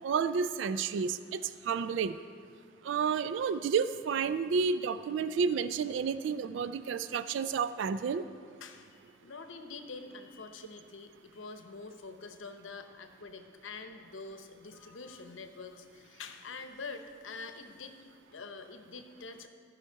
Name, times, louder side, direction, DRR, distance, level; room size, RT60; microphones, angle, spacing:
voice 1, 0.0-2.2 2.8-8.2, right 6 dB, 75° right, 13 dB, 0.3 m, -31 dB
voice 2, 8.6-18.0 18.3-19.5, left 4 dB, 90° left, 7 dB, 0.8 m, -46 dB
14.5 x 5.7 x 4.6 m, 2.2 s
head